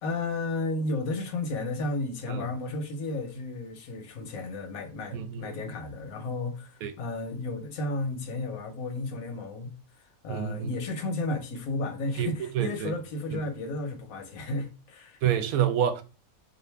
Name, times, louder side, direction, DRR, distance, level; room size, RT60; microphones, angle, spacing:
voice 1, 0.0-9.7 10.2-15.2, left 2 dB, 85° left, 1.2 m, -33 dB
voice 2, 5.1-5.5 6.8-6.9 10.3-10.7 12.2-12.9 13.3-13.4 15.2-16.0, right 10 dB, 85° right, 1.0 m, -28 dB
4.0 x 2.5 x 3.3 m
omnidirectional pair, 1.4 m